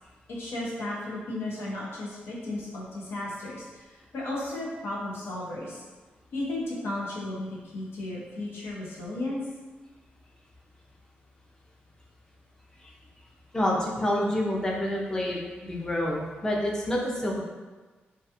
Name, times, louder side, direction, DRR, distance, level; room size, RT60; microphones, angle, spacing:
voice 1, 0.3-5.8 6.3-9.4, left 1 dB, 80° left, -5 dB, 0.7 m, -34 dB
voice 2, 13.5-17.4, left 1 dB, 15° left, -3 dB, 0.5 m, -28 dB
2.3 x 2.2 x 2.8 m, 1.3 s
wide cardioid pair, 110°, 4 cm